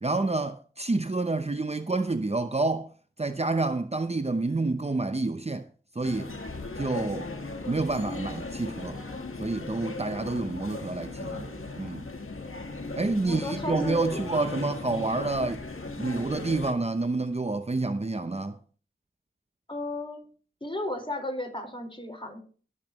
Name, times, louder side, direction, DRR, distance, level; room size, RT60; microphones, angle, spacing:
voice 1, 0.0-2.9 3.2-5.7 5.9-6.3 6.8-7.3 7.7-9.0 9.4-12.0 13.0-15.6 16.0-18.6, right 3 dB, 30° right, 0.7 m, -28 dB
sound 1, 6.0-16.7, left 3 dB, 85° left, 1.5 m, -37 dB
voice 2, 13.2-14.3 19.7-20.2 20.6-22.4, left 1 dB, 25° left, 4.6 m, -34 dB
21.5 x 7.8 x 3.0 m
wide cardioid pair, 45°, 21 cm